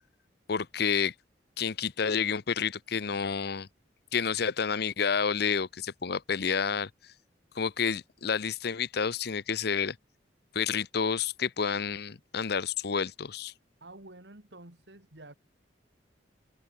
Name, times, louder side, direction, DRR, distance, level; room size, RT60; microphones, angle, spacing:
voice 1, 0.5-1.1 1.6-3.7 4.1-6.9 7.6-10.0 10.5-13.5, left 6 dB, 60° left, 0.7 m, -29 dB
voice 2, 13.8-15.3, right 2 dB, 70° right, 3.6 m, -49 dB
head